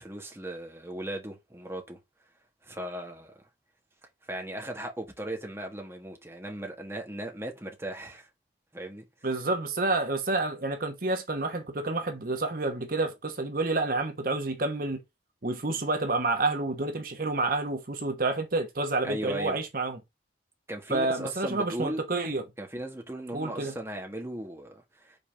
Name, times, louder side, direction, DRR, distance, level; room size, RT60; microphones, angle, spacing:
voice 1, 0.0-2.0 2.6-3.3 4.3-8.3 8.7-9.1 19.0-19.6 20.7-22.0 22.6-25.2, right 1 dB, 15° right, 1.5 m, -37 dB
voice 2, 9.2-15.0 15.4-20.0 20.9-22.4 23.3-23.7, right 2 dB, 55° right, 1.2 m, -29 dB
5.4 x 4.1 x 5.1 m
head